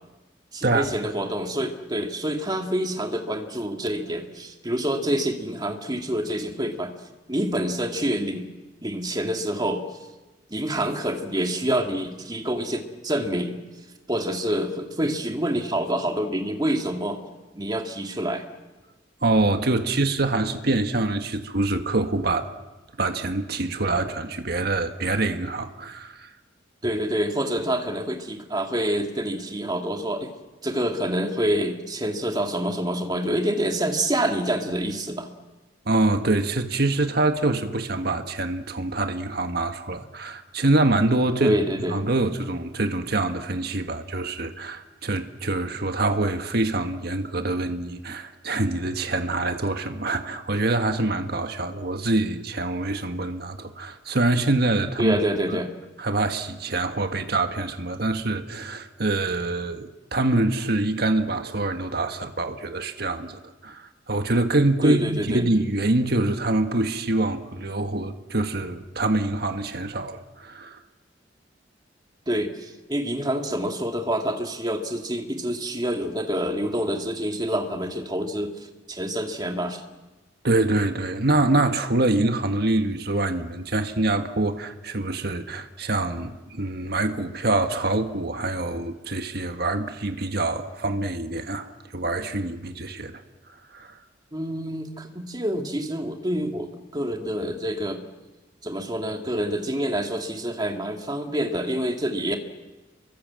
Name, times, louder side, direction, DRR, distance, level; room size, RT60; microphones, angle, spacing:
voice 1, 0.5-6.9 7.3-8.5 8.8-9.8 10.5-13.6 14.1-17.2 17.5-18.4 26.8-30.3 30.6-35.3 41.4-42.0 55.0-55.7 64.8-65.5 72.3-79.8 94.3-98.0 98.6-102.4, right 1 dB, 20° right, 2.4 m, -27 dB
voice 2, 19.2-22.5 23.0-26.3 35.8-41.5 41.9-55.1 56.0-70.8 80.4-93.2 93.7-93.9, right 2 dB, 55° right, 1.6 m, -25 dB
29.5 x 24.0 x 7.7 m
head